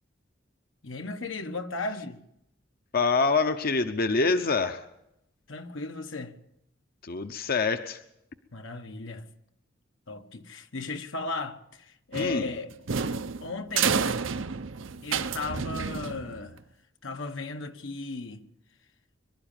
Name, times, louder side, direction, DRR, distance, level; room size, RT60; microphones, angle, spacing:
voice 1, 0.8-2.2 5.5-6.4 8.5-9.2 10.1-12.7 13.4-14.0 15.0-16.6 17.0-18.4, left 3 dB, 80° left, 1.3 m, -36 dB
voice 2, 2.9-4.8 7.0-8.0 12.1-12.5, left 4 dB, 50° left, 0.8 m, -25 dB
sound 1, 12.1-16.6, right 6 dB, 80° right, 0.8 m, -30 dB
23.5 x 12.5 x 9.0 m
head